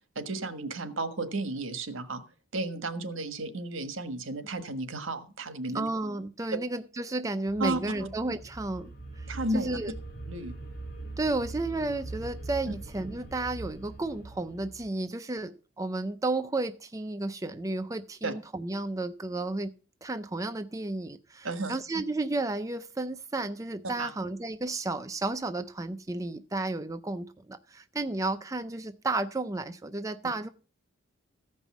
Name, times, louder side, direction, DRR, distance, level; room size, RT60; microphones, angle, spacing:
voice 1, 0.1-2.2 2.5-5.9 7.6-7.8 9.3-9.8 10.3-10.5 18.2-18.3 21.4-21.8 24.0-24.1, right 2 dB, 75° right, 1.4 m, -33 dB
voice 2, 5.7-9.9 11.2-19.7 20.0-30.5, right 2 dB, 15° right, 0.5 m, -32 dB
sound 1, 7.5-14.9, right 2 dB, 45° left, 3.0 m, -42 dB
14.5 x 5.4 x 7.2 m
head